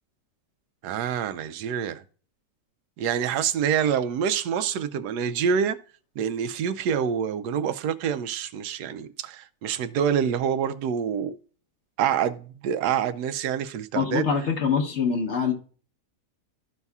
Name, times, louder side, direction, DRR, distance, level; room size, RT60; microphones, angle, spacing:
voice 1, 0.8-2.0 3.0-5.8 6.2-11.4 12.0-14.3, right 8 dB, 90° right, 1.2 m, -26 dB
voice 2, 13.9-15.5, left 6 dB, 50° left, 1.2 m, -24 dB
13.0 x 5.4 x 2.3 m
omnidirectional pair, 1.7 m